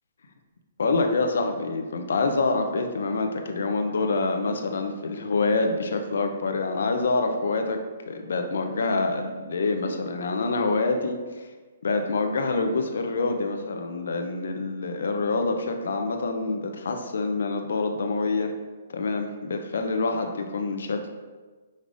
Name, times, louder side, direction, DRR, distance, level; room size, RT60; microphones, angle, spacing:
voice 1, 0.8-7.8 8.1-11.5 11.8-18.5 18.9-21.1, left 3 dB, 75° left, 5 dB, 0.5 m, -26 dB
5.2 x 3.2 x 2.5 m, 1.3 s
hypercardioid pair, 155°, 0 cm